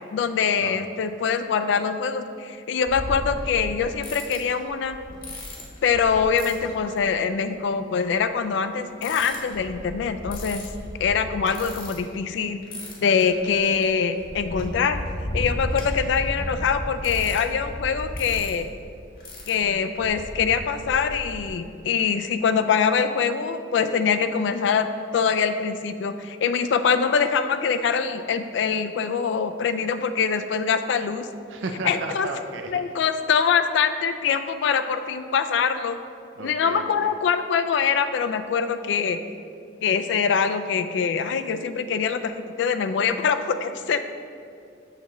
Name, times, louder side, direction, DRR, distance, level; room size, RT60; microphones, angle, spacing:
voice 1, 0.1-5.0 5.8-10.7 11.0-12.6 13.0-15.0 15.3-18.7 19.5-24.9 25.1-31.3 31.8-32.3 32.7-36.0 36.4-39.2 39.8-42.3 42.6-44.1, left 6 dB, 65° left, 10 dB, 0.3 m, -24 dB
sound 1, 2.8-7.1 8.0-8.1 9.0-12.3 12.6-21.5, left 1 dB, 50° left, 1.2 m, -35 dB
voice 2, 31.5-32.8 36.4-37.1, right 2 dB, 75° right, 4 dB, 0.4 m, -33 dB
6.6 x 3.0 x 5.8 m, 2.3 s
head